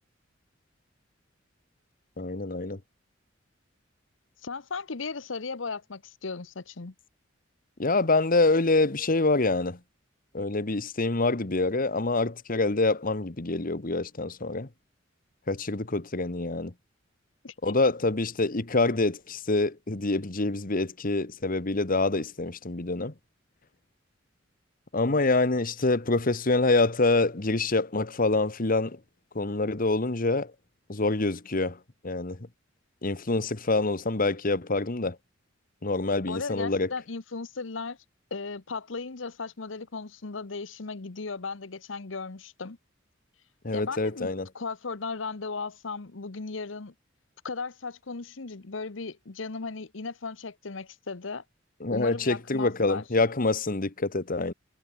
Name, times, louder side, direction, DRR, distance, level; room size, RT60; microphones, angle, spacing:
voice 1, 2.2-2.8 7.8-9.8 10.3-14.7 15.5-16.7 17.6-23.1 24.9-29.0 29.3-30.5 30.9-31.8 32.0-32.4 33.0-35.2 35.8-36.9 43.6-44.5 51.8-54.5, left 2 dB, 45° left, 1.4 m, -26 dB
voice 2, 4.4-6.9 17.4-17.8 36.3-38.0 38.3-42.8 43.7-46.9 47.4-51.4 51.9-53.0, left 4 dB, 80° left, 1.0 m, -36 dB
head